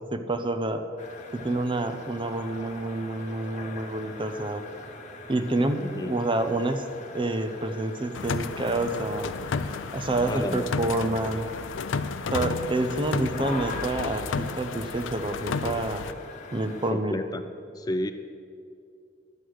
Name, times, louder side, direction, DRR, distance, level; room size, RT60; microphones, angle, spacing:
voice 1, 0.1-0.8 1.3-4.6 5.3-6.8 7.1-9.3 9.9-11.5 12.3-16.1 16.5-17.2, right 2 dB, 25° right, 8 dB, 0.7 m, -28 dB
sound 1, 1.0-16.9, left 3 dB, 40° left, 1.1 m, -43 dB
voice 2, 5.8-6.1 10.3-10.6 16.9-17.4 17.7-18.1, left 1 dB, 20° left, 8 dB, 0.4 m, -31 dB
sound 2, 8.1-16.1, left 5 dB, 85° left, 0.4 m, -32 dB
11.5 x 8.3 x 6.2 m, 2.4 s
head